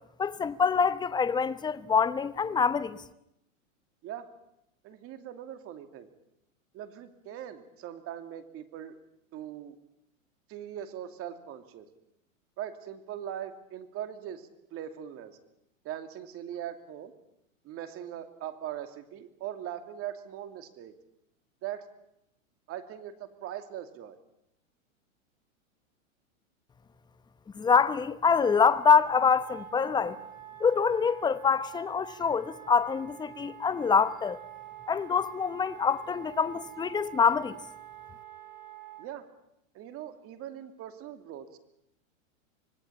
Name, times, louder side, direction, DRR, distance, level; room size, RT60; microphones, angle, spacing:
voice 1, 0.2-3.0 27.6-30.2 30.6-34.4 34.9-37.6, left 6 dB, 10° left, 1.0 m, -25 dB
voice 2, 4.8-6.1 6.7-9.0 9.3-9.8 10.5-11.9 12.6-15.4 15.8-17.1 17.6-20.9 21.6-21.9 22.7-24.2 39.0-39.3 39.7-41.6, right 10 dB, 35° right, 2.7 m, -40 dB
Wind instrument woodwind instrument, 28.2-39.1, right 11 dB, 80° right, 5.6 m, -46 dB
25.5 x 19.5 x 8.7 m
hypercardioid pair, 120°, 41 cm